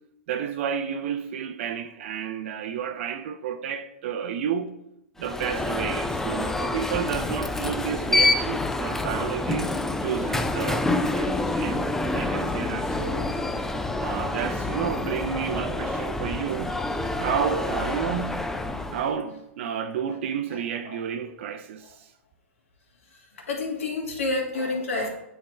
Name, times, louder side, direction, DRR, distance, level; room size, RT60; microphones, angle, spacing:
voice 1, 0.3-4.7 5.2-9.8 10.0-11.8 12.1-13.3 14.0-16.8 17.1-18.4 18.9-22.1, right 8 dB, 60° right, 0.5 m, -31 dB
Alarm, 5.2-19.1, left 2 dB, 5° left, 0.3 m, -27 dB
voice 2, 23.5-25.1, left 3 dB, 80° left, 1.7 m, -28 dB
9.0 x 3.4 x 3.3 m
hypercardioid pair, 120°, 7 cm